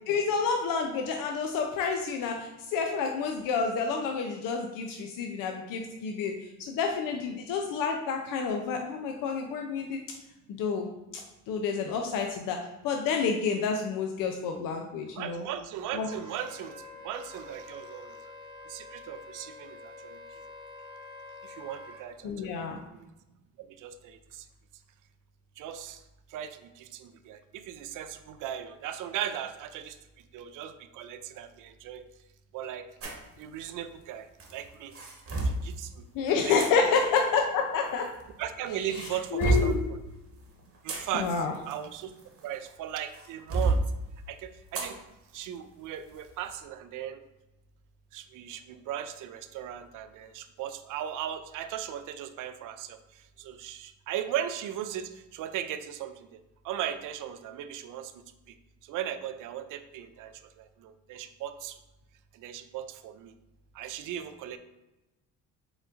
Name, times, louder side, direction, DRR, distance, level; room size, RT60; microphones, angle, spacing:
voice 1, 0.1-10.0 10.5-10.9 11.5-12.6 12.8-15.4 15.9-16.1 22.2-22.8 36.1-38.1 39.3-39.9 41.1-41.5, left 5 dB, 65° left, 3 dB, 0.6 m, -29 dB
voice 2, 15.2-18.2 18.7-20.2 21.4-22.6 22.9-23.1 23.6-24.5 25.6-26.0 26.3-30.0 30.3-32.0 32.5-32.9 33.4-34.9 35.4-36.1 36.4-36.9 38.4-40.0 40.8-42.1 42.4-43.8 44.3-45.0 45.3-47.2 48.1-56.4 56.6-58.1 58.9-61.8 62.3-63.3 63.7-64.6, right 10 dB, 60° right, 10 dB, 0.5 m, -38 dB
Wind instrument woodwind instrument, 16.0-22.0, left 3 dB, 15° right, 0.8 m, -47 dB
sound 1, 33.0-33.3 34.4-35.6 36.6-36.7 37.8-38.5 38.9-39.8 40.6-42.7 43.1-43.8 44.7-45.0 45.4-45.5 46.1-46.3, right 2 dB, 40° right, 1.1 m, -29 dB
4.9 x 3.7 x 2.5 m, 0.99 s
cardioid pair, 95°, 35 cm